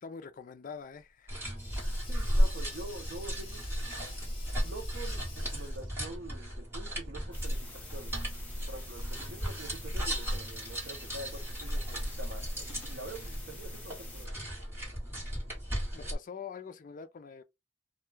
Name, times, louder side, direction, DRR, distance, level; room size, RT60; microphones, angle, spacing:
voice 1, 0.0-1.4 15.9-17.4, left 6 dB, 40° left, 0.4 m, -44 dB
Sink (filling or washing), 0.9-6.1, left 4 dB, 25° left, 1.0 m, -51 dB
sound 1, 1.3-16.1, equal, 10° right, 1.2 m, -35 dB
voice 2, 2.0-3.7 4.6-8.2 8.7-14.4, right 2 dB, 60° right, 0.6 m, -46 dB
sound 2, 7.3-14.3, left 2 dB, 5° left, 0.7 m, -49 dB
2.2 x 2.2 x 3.1 m
head